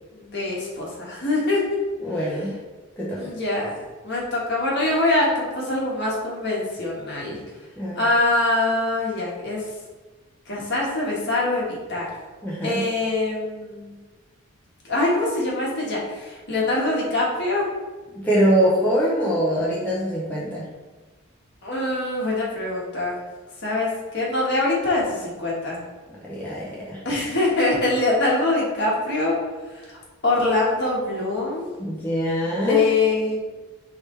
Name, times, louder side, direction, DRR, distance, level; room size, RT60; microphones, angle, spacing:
voice 1, 0.1-1.8 3.2-7.4 7.9-9.6 10.5-12.1 12.6-13.9 14.8-17.7 21.6-23.2 23.6-25.8 27.0-29.3 29.7-31.7 32.4-33.4, left 2 dB, 50° left, -4 dB, 1.2 m, -24 dB
voice 2, 2.0-2.6 3.0-3.3 7.8-8.1 12.4-12.8 18.1-20.7 26.2-27.0 31.8-32.8, equal, 10° left, -7 dB, 0.6 m, -23 dB
4.8 x 3.4 x 3.2 m, 1.3 s
head